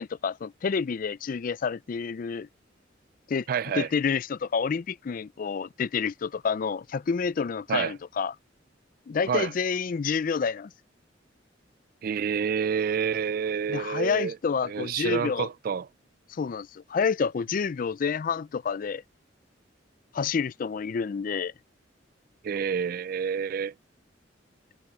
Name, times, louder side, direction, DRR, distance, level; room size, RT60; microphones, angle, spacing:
voice 1, 0.0-2.5 3.3-3.5 3.7-8.3 9.1-10.7 13.7-15.5 16.3-19.0 20.1-21.5, left 6 dB, 45° left, 0.4 m, -28 dB
voice 2, 3.5-3.9 7.7-7.9 9.3-9.5 12.0-14.4 14.6-15.9 22.4-23.7, right 7 dB, 50° right, 0.3 m, -28 dB
head